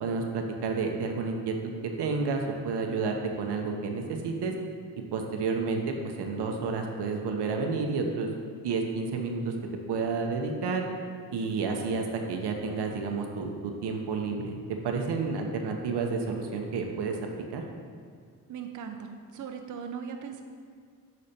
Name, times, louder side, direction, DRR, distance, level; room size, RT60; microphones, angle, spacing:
voice 1, 0.0-1.5 1.8-4.5 5.1-8.3 8.6-9.5 9.9-10.9 11.3-14.6 14.8-17.2 17.5-17.6, right 4 dB, 80° right, 3 dB, 0.8 m, -30 dB
voice 2, 18.5-20.4, right 7 dB, 50° right, 5 dB, 0.6 m, -39 dB
6.6 x 4.2 x 4.2 m, 2.2 s
supercardioid pair, 55°, 40 cm